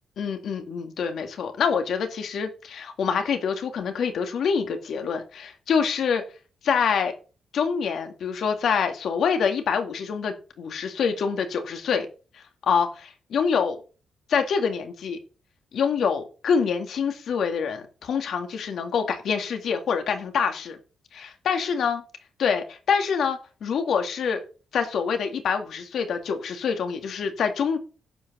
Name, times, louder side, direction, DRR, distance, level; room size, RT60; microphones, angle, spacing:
voice 1, 0.2-6.2 6.6-7.1 7.5-12.1 12.3-13.8 14.3-15.2 15.7-20.8 21.1-22.0 22.4-24.4 24.7-27.8, left 6 dB, 70° left, 6 dB, 2.2 m, -26 dB
11.5 x 5.1 x 8.1 m, 0.35 s
cardioid pair, 100°, 0 cm